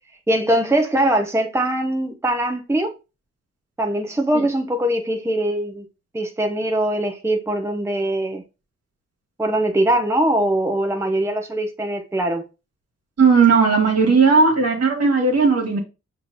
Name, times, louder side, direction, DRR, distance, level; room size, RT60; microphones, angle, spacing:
voice 1, 0.3-2.9 3.8-5.9 6.1-8.4 9.4-12.4, right 1 dB, 10° right, 0.9 m, -21 dB
voice 2, 13.2-15.8, right 4 dB, 60° right, 1.7 m, -16 dB
6.1 x 3.0 x 2.6 m
cardioid pair, 55°, 29 cm